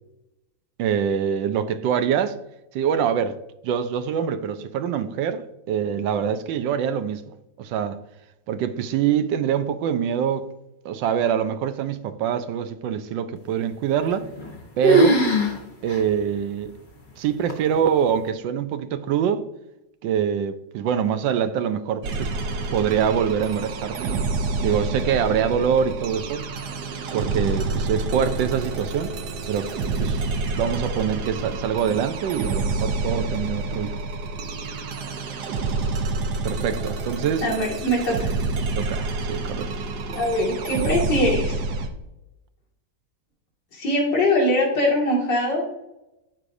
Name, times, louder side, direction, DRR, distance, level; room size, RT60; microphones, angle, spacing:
voice 1, 0.8-2.4 2.7-3.4 3.6-7.2 7.6-8.0 8.5-10.4 10.8-14.3 14.8-15.2 15.8-16.7 17.2-19.5 20.0-22.3 22.7-24.3 24.6-26.5 27.1-29.2 29.5-29.7 30.0-30.2 30.5-34.0 36.4-37.5 38.7-39.7, right 8 dB, 90° right, 1.3 m, -24 dB
sound 1, 14.1-14.6 14.8-15.6 15.9-16.0 16.7-16.8 17.5-17.9, right 1 dB, 30° left, 1.1 m, -19 dB
sound 2, 22.0-41.9, right 3 dB, 70° right, 1.3 m, -28 dB
voice 2, 37.4-38.3 40.1-41.6 43.7-45.7, left 1 dB, 75° left, 2.7 m, -22 dB
13.5 x 4.9 x 2.6 m
omnidirectional pair, 1.9 m